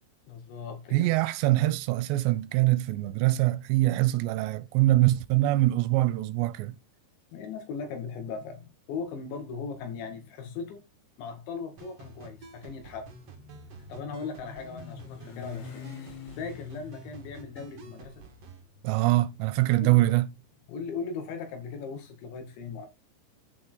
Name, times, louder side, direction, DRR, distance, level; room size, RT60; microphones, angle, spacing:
voice 1, 0.3-1.1 7.3-10.8 11.2-13.1 13.9-15.9 16.4-18.2 19.8-20.0 20.7-22.9, left 5 dB, 85° left, 4.4 m, -38 dB
voice 2, 0.9-6.8 18.8-20.3, right 17 dB, 85° right, 2.8 m, -24 dB
sound 1, 11.8-18.6, right 5 dB, 50° right, 2.1 m, -51 dB
Motorcycle, 12.3-20.4, left 7 dB, 65° left, 4.9 m, -46 dB
9.1 x 8.7 x 4.0 m
omnidirectional pair, 5.1 m